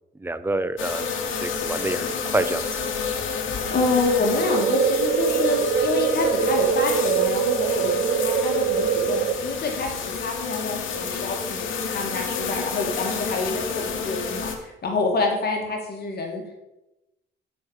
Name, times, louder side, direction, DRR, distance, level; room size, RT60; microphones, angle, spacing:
voice 1, 0.2-2.7, right 2 dB, 10° right, 13 dB, 0.4 m, -27 dB
sound 1, 0.8-14.6, left 6 dB, 75° left, 1.2 m, -29 dB
voice 2, 3.7-16.6, left 3 dB, 55° left, 2 dB, 1.8 m, -27 dB
sound 2, 4.3-9.3, right 7 dB, 60° right, 0.7 m, -23 dB
7.1 x 4.7 x 6.2 m, 0.96 s
cardioid pair, 90°, 20 cm